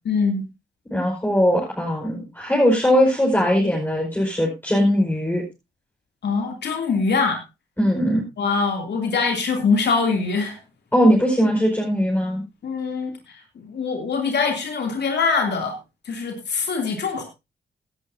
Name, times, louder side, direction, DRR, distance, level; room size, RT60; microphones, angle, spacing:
voice 1, 0.0-0.4 6.2-7.4 8.4-10.6 12.6-15.8 16.0-17.2, left 4 dB, 70° left, 3 dB, 3.0 m, -23 dB
voice 2, 0.9-5.4 7.8-8.2 10.9-12.4, equal, 10° left, -3 dB, 5.1 m, -20 dB
16.5 x 11.0 x 2.8 m, 0.25 s
cardioid pair, 70°, 18 cm